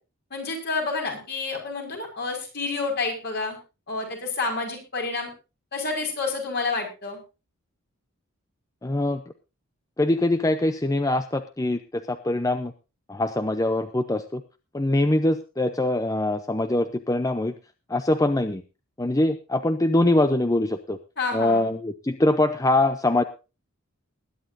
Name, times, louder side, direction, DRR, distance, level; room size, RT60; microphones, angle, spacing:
voice 1, 0.3-3.6 3.9-5.3 5.7-7.2 21.2-21.7, left 3 dB, 50° left, 2 dB, 5.8 m, -29 dB
voice 2, 8.8-9.2 10.0-12.7 13.1-14.4 14.7-17.5 17.9-18.6 19.0-21.0 21.3-23.2, left 1 dB, 15° left, 9 dB, 0.6 m, -23 dB
20.5 x 11.0 x 2.7 m, 0.30 s
head